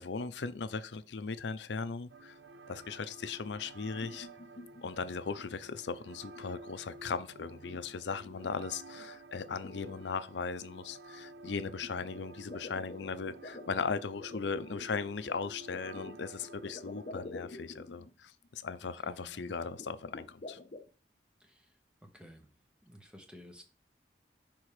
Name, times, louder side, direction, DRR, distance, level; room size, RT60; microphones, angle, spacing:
voice 1, 0.0-2.4 2.7-4.3 4.8-20.6, left 5 dB, 90° left, 0.6 m, -38 dB
sound 1, 2.1-18.1, right 2 dB, 90° right, 0.5 m, -52 dB
sound 2, 3.6-4.8 5.3-5.7 6.1-6.6 6.9-8.5 8.9-9.0 9.4-10.7 11.8-14.9 15.7-18.1 18.4-18.5 18.8-18.9 19.5-20.9, left 2 dB, 45° left, 0.7 m, -48 dB
voice 2, 18.8-19.5 21.4-21.7 22.1-22.5 22.8-23.6, equal, 5° right, 1.0 m, -54 dB
6.1 x 3.6 x 4.8 m
head